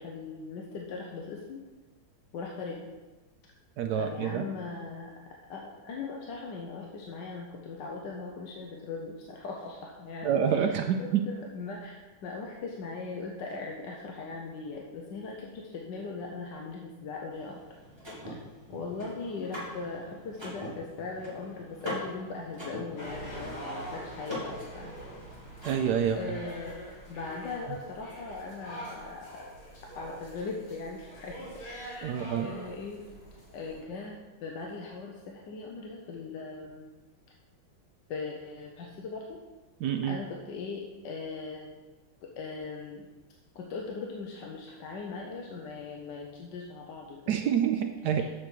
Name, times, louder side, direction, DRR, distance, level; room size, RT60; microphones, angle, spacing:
voice 1, 0.0-1.6 2.3-2.8 4.0-17.6 18.7-25.0 26.1-26.8 27.1-29.4 29.9-31.5 31.9-33.0 33.5-36.9 38.1-39.4 40.1-41.7 42.2-43.1 43.5-47.2, left 4 dB, 65° left, -1 dB, 1.3 m, -39 dB
voice 2, 3.8-4.4 10.2-11.2 25.6-26.2 32.0-32.5 39.8-40.2 47.3-48.2, right 8 dB, 75° right, 5 dB, 0.9 m, -27 dB
Car / Mechanisms, 17.3-26.2, left 1 dB, 10° right, 2.6 m, -42 dB
sound 1, 23.0-33.8, right 1 dB, 80° left, 3.4 m, -44 dB
7.2 x 6.8 x 4.5 m, 1.2 s
omnidirectional pair, 2.3 m